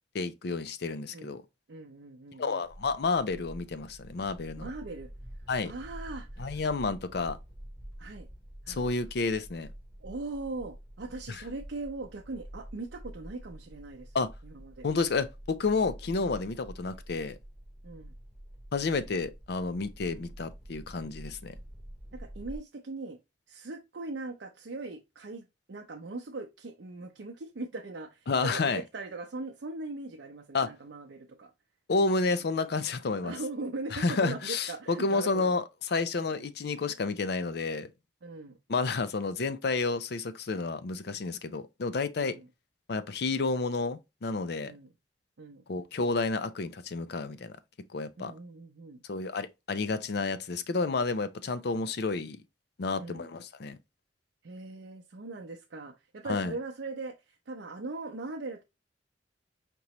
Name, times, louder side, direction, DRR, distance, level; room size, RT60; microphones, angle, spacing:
voice 1, 0.1-1.4 2.4-4.7 5.5-5.7 6.4-7.4 8.7-9.7 11.3-11.4 14.1-14.3 14.8-17.4 18.7-21.5 28.3-28.8 30.5-30.7 31.9-33.3 33.9-37.9 38.7-42.4 42.9-44.7 45.7-47.5 47.9-48.3 49.1-52.4 52.8-53.8 56.2-56.5, left 3 dB, 60° left, 0.5 m, -30 dB
voice 2, 1.7-2.6 4.6-5.1 5.6-6.6 8.0-8.3 8.6-8.8 10.0-14.1 14.4-14.9 17.8-18.1 20.1-20.3 22.1-23.2 23.5-31.5 33.2-35.5 36.4-36.5 38.2-38.6 42.2-42.4 44.6-44.9 45.4-45.6 48.2-49.0 53.0-53.3 54.4-58.6, right 3 dB, 70° right, 0.6 m, -40 dB
sound 1, 2.6-22.6, right 1 dB, 5° right, 1.3 m, -47 dB
5.2 x 2.9 x 3.0 m
head